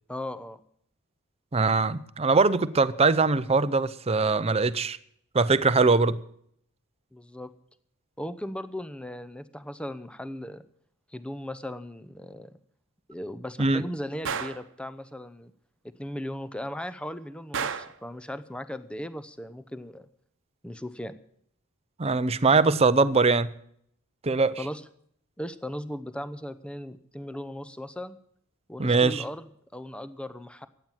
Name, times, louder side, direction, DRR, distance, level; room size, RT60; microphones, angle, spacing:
voice 1, 0.1-0.6 7.1-7.5 8.2-10.6 11.1-12.6 13.1-15.5 15.8-20.1 20.6-21.1 24.6-24.8 25.4-28.2 28.7-29.4 29.7-30.7, left 1 dB, 5° left, 0.7 m, -37 dB
voice 2, 1.5-5.0 5.3-6.2 13.6-13.8 22.0-23.5 24.2-24.6 28.8-29.2, right 4 dB, 30° right, 0.6 m, -22 dB
Gunshot gunfire, 14.3-14.7 17.5-18.0, right 6 dB, 60° right, 1.0 m, -31 dB
15.0 x 9.2 x 7.3 m
head